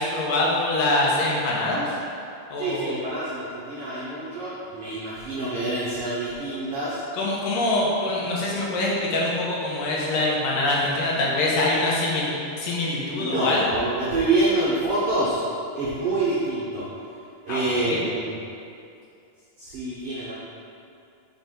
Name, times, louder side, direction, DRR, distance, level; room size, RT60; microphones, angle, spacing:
voice 1, 0.0-1.9 2.5-2.9 7.1-13.7 17.5-18.0, left 2 dB, 80° left, -4 dB, 2.6 m, -24 dB
voice 2, 2.6-7.0 13.2-15.4 15.7-16.9 17.4-18.3 19.6-20.3, right 2 dB, 85° right, -8 dB, 1.2 m, -26 dB
6.2 x 5.1 x 3.8 m, 2.5 s
omnidirectional pair, 4.0 m